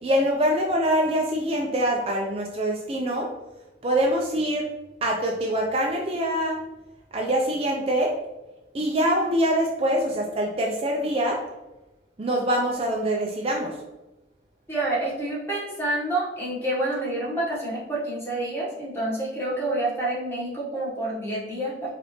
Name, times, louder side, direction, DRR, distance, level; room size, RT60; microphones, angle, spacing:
voice 1, 0.0-3.3 3.8-4.6 5.0-6.6 7.1-8.1 8.7-11.4 12.2-13.7, equal, 30° right, 0 dB, 0.4 m, -24 dB
voice 2, 14.7-21.9, right 1 dB, 15° left, -6 dB, 1.2 m, -28 dB
5.0 x 2.5 x 3.1 m, 1.0 s
head